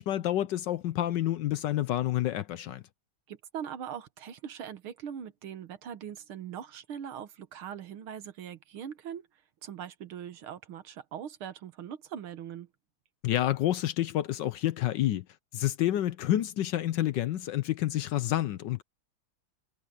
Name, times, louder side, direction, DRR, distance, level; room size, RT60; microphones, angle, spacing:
voice 1, 0.0-2.8 13.2-15.2 15.5-18.8, left 13 dB, 70° left, 1.2 m, -29 dB
voice 2, 3.3-9.3 9.6-12.7, right 9 dB, 80° right, 2.1 m, -41 dB
omnidirectional pair, 2.3 m